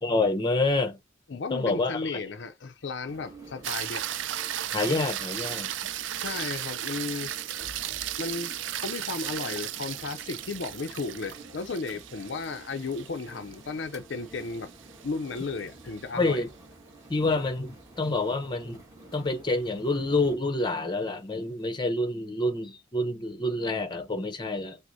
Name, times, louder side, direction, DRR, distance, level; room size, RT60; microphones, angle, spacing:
voice 1, 0.0-1.0 1.5-2.2 4.7-5.7 16.1-16.5 17.1-18.8 19.1-24.8, left 2 dB, 25° left, 0.7 m, -27 dB
voice 2, 1.3-4.1 6.2-7.3 8.2-14.7 15.0-16.5, left 4 dB, 65° left, 0.5 m, -34 dB
sound 1, 3.1-20.4, right 2 dB, 15° right, 1.3 m, -50 dB
sound 2, 3.6-16.0 20.5-20.6, right 12 dB, 70° right, 0.4 m, -35 dB
6.1 x 2.1 x 2.6 m
head